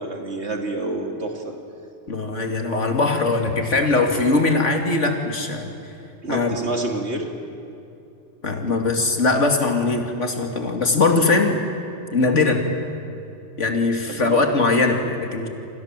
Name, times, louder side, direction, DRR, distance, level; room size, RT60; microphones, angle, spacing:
voice 1, 0.0-1.5 6.2-7.3 14.1-14.4, right 2 dB, 70° right, 3 dB, 3.2 m, -28 dB
voice 2, 2.1-5.7 6.3-6.5 8.4-11.6 12.1-12.7 13.6-15.5, left 3 dB, 90° left, 4 dB, 2.9 m, -20 dB
28.5 x 26.0 x 7.6 m, 2.7 s
omnidirectional pair, 1.2 m